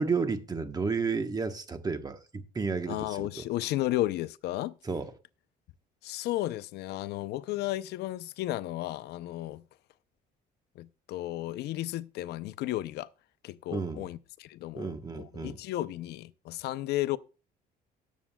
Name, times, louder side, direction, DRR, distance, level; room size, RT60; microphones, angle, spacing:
voice 1, 0.0-3.3 4.8-5.1 13.7-14.1 14.7-15.6, right 4 dB, 25° right, 1.1 m, -32 dB
voice 2, 2.9-4.8 6.0-9.6 10.8-13.1 13.4-17.2, left 15 dB, 80° left, 0.6 m, -33 dB
18.5 x 7.3 x 2.3 m
cardioid pair, 110°, 17 cm